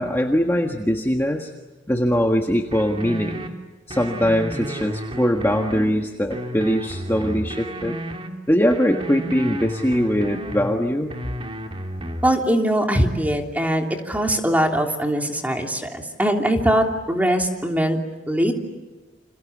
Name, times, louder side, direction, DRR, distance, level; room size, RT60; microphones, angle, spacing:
voice 1, 0.0-1.5 1.9-3.5 3.9-7.9 8.5-11.1, equal, 15° left, 2 dB, 1.5 m, -21 dB
sound 1, 2.7-3.5 3.9-5.9 6.3-8.3 8.7-10.7 11.1-12.3, right 1 dB, 30° right, 2.7 m, -32 dB
voice 2, 12.2-18.0 18.3-18.5, equal, 10° right, 2 dB, 3.1 m, -21 dB
30.0 x 27.5 x 7.3 m, 1.2 s
head